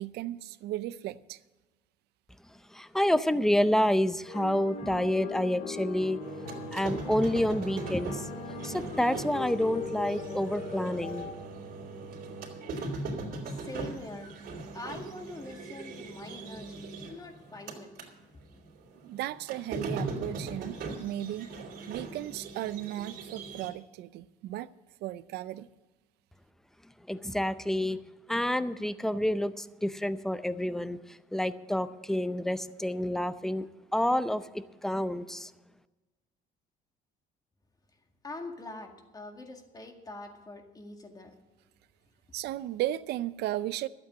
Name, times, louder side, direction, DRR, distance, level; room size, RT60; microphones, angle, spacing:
voice 1, 0.0-1.4 19.0-21.5 21.9-24.7 25.0-25.7 42.3-43.9, right 14 dB, 80° right, 0.6 m, -35 dB
voice 2, 2.7-6.2 6.7-8.3 8.6-11.3 27.1-28.0 28.3-33.7 33.9-35.5, left 1 dB, 5° left, 0.6 m, -28 dB
sound 1, 4.3-11.3, left 4 dB, 65° left, 1.7 m, -40 dB
sound 2, 6.2-18.1 18.5-23.7, right 3 dB, 65° right, 3.0 m, -40 dB
voice 3, 13.4-14.3 14.7-17.9 38.2-41.4, left 2 dB, 20° left, 1.9 m, -44 dB
12.5 x 8.4 x 7.6 m
cardioid pair, 110°, 17 cm